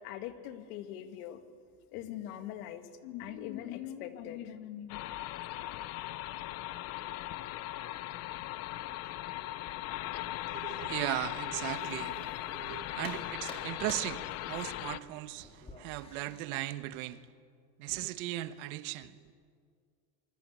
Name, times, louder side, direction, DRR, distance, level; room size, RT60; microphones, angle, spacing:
voice 1, 0.0-1.4 1.9-5.0, left 11 dB, 60° left, 2.3 m, -42 dB
sound 1, 4.9-15.0, left 14 dB, 30° left, 0.6 m, -39 dB
voice 2, 10.5-14.2 14.5-17.2 17.8-19.2, right 16 dB, 60° right, 1.2 m, -37 dB
sound 2, 11.3-12.7 13.0-16.4, left 2 dB, 10° left, 3.9 m, -50 dB
27.0 x 23.5 x 8.2 m
supercardioid pair, 155°, 50 cm